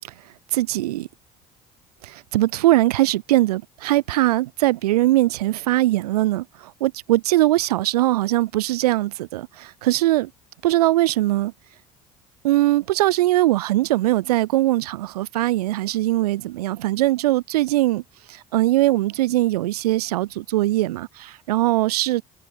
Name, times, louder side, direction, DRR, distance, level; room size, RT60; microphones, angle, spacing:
voice 1, 0.5-1.1 2.0-6.4 6.8-10.3 10.6-11.5 12.4-18.0 18.3-22.2, right 16 dB, 90° right, 2.9 m, -21 dB
hypercardioid pair, 70°, 19 cm